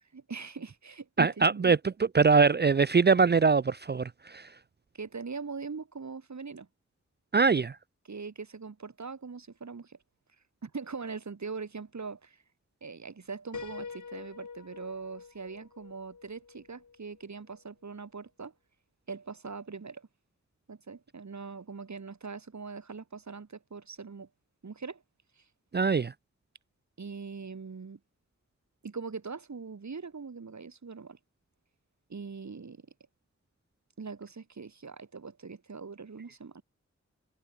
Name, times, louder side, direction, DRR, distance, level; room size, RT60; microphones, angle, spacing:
voice 1, 0.1-1.7 4.9-6.7 8.0-10.0 10.6-12.4 12.8-18.5 19.1-20.1 20.7-24.3 24.6-25.0 25.4-25.5 27.0-28.0 28.8-31.2 32.1-32.8 34.0-36.6, right 5 dB, 70° right, 3.0 m, -41 dB
voice 2, 1.2-4.5 7.3-7.8 25.7-26.1, right 5 dB, 35° right, 0.5 m, -23 dB
Piano, 13.5-17.3, left 5 dB, 85° left, 3.8 m, -45 dB
wide cardioid pair, 65°, 29 cm